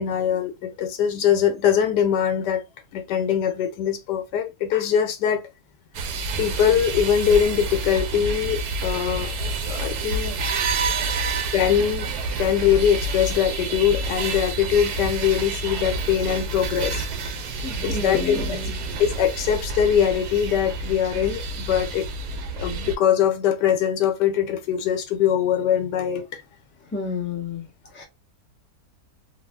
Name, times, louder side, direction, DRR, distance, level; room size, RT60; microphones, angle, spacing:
voice 1, 0.0-2.6 2.9-5.4 6.4-9.3 9.7-10.6 11.3-12.1 12.4-17.1 17.8-18.6 19.0-22.1 22.5-26.4, left 9 dB, 90° left, 1.2 m, -22 dB
sound 1, 5.9-23.0, right 3 dB, 80° right, 1.1 m, -28 dB
voice 2, 17.6-18.8 26.9-27.7 27.9-28.0, left 5 dB, 15° left, 0.4 m, -30 dB
3.3 x 2.4 x 2.2 m
omnidirectional pair, 1.8 m